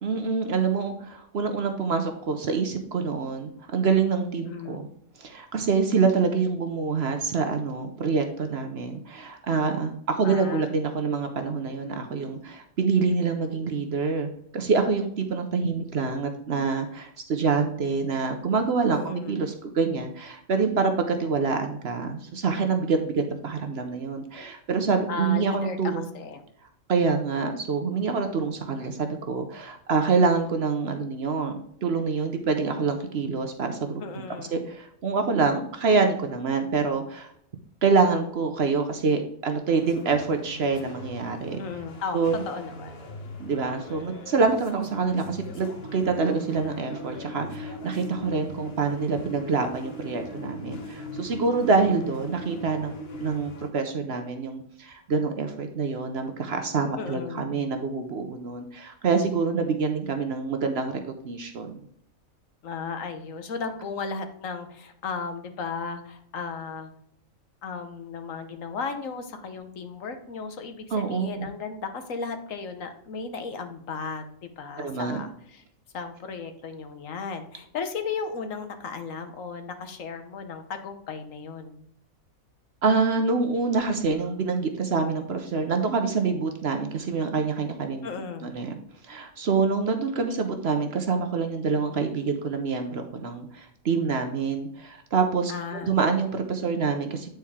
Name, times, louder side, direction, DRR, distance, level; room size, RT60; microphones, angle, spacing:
voice 1, 0.0-4.9 5.2-26.1 26.9-34.0 34.4-37.3 37.8-41.6 42.1-42.4 43.4-52.9 53.2-61.8 70.9-71.5 74.8-75.2 82.8-88.1 88.4-88.8 89.0-97.3, right 4 dB, 55° right, 5 dB, 0.9 m, -26 dB
voice 2, 4.5-4.9 10.2-10.7 18.9-19.4 25.1-25.8 26.1-26.4 34.0-34.6 41.6-42.2 42.4-43.1 57.0-57.7 62.6-66.9 67.6-75.6 75.9-81.9 88.0-88.6 95.5-95.9, left 5 dB, 65° left, 7 dB, 1.3 m, -35 dB
sound 1, 39.8-53.7, left 2 dB, 50° left, 1.1 m, -43 dB
sound 2, 45.8-53.3, right 1 dB, 70° right, 1.8 m, -40 dB
9.1 x 4.4 x 3.6 m, 0.69 s
omnidirectional pair, 1.5 m